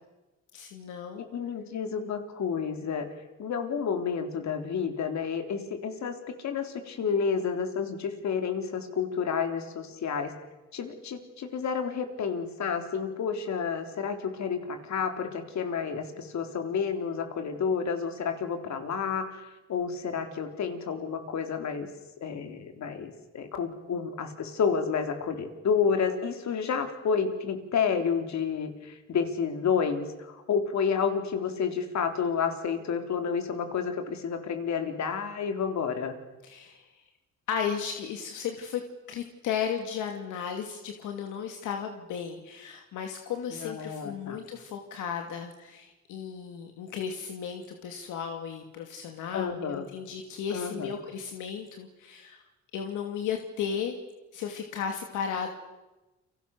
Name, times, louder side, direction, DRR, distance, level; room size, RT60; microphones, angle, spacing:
voice 1, 0.5-1.2 36.4-36.9 37.5-38.8 39.1-52.4 52.7-54.0 54.3-55.5, left 7 dB, 90° left, 4 dB, 2.6 m, -35 dB
voice 2, 1.2-3.1 3.4-10.3 10.7-21.9 22.2-36.1 43.5-44.4 49.3-49.9 50.5-50.9, left 6 dB, 65° left, 6 dB, 4.0 m, -30 dB
30.0 x 25.5 x 6.8 m, 1.1 s
cardioid pair, 90°, 30 cm